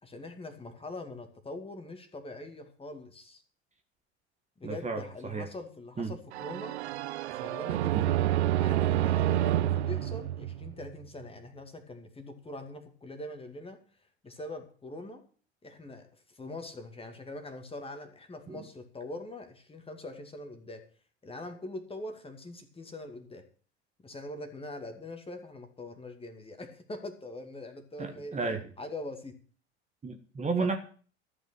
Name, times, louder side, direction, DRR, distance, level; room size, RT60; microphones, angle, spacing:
voice 1, 0.0-3.4 4.6-6.8 7.3-8.2 8.6-13.8 14.2-15.2 15.6-20.9 21.2-23.5 24.0-29.4 30.6-30.7, left 2 dB, 15° left, 7 dB, 2.3 m, -43 dB
voice 2, 4.6-5.4 6.0-6.1 7.9-8.2 18.5-18.6 28.0-28.6 30.0-30.8, right 4 dB, 20° right, 5 dB, 1.7 m, -32 dB
sound 1, 6.3-11.1, right 13 dB, 70° right, 0.6 m, -28 dB
13.5 x 6.1 x 8.9 m, 0.42 s
figure-of-eight pair, 80°, 35 cm